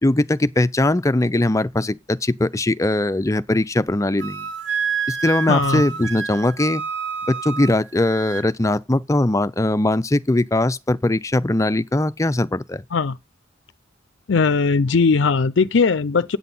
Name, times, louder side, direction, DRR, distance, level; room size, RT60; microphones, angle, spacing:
voice 1, 0.0-4.5 5.1-6.8 7.3-12.8, left 1 dB, 15° left, 0.5 m, -20 dB
Wind instrument woodwind instrument, 4.2-8.5, right 6 dB, 65° right, 1.3 m, -28 dB
voice 2, 5.5-5.8 12.9-13.2 14.3-16.4, left 4 dB, 70° left, 0.5 m, -18 dB
8.4 x 8.1 x 5.5 m
head